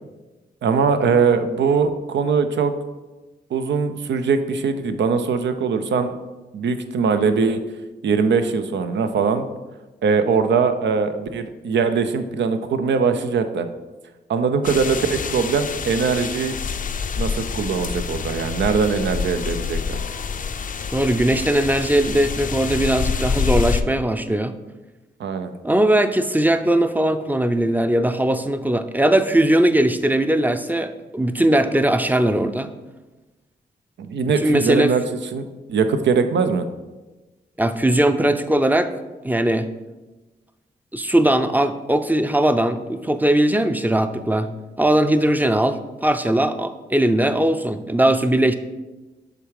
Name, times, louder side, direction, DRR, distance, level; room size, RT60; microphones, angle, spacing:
voice 1, 0.6-2.7 3.5-6.1 6.5-7.6 8.0-9.5 10.0-13.7 14.3-16.6 17.2-20.0 25.2-25.5 34.0-35.0 35.3-36.6, right 5 dB, 75° right, 9 dB, 0.6 m, -21 dB
sound 1, 14.6-23.8, left 5 dB, 45° left, 0.5 m, -27 dB
voice 2, 20.9-24.5 25.6-32.7 34.4-34.9 37.6-38.9 39.2-39.7 40.9-44.5 44.8-48.6, right 1 dB, 10° right, 10 dB, 0.5 m, -19 dB
6.6 x 3.7 x 4.8 m, 1.1 s
cardioid pair, 50°, 18 cm